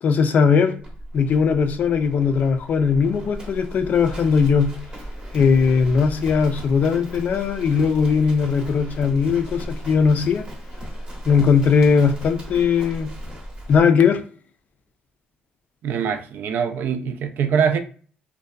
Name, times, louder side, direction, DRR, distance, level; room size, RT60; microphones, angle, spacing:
voice 1, 0.0-0.7 1.1-4.7 5.3-10.4 11.3-13.1 13.7-14.2, left 6 dB, 50° left, 0.3 m, -19 dB
Livestock farm animals working animals, 0.8-13.8, equal, 25° right, 0.7 m, -36 dB
voice 2, 15.8-17.8, right 7 dB, 65° right, 0.3 m, -23 dB
2.5 x 2.2 x 2.3 m
cardioid pair, 105°, 4 cm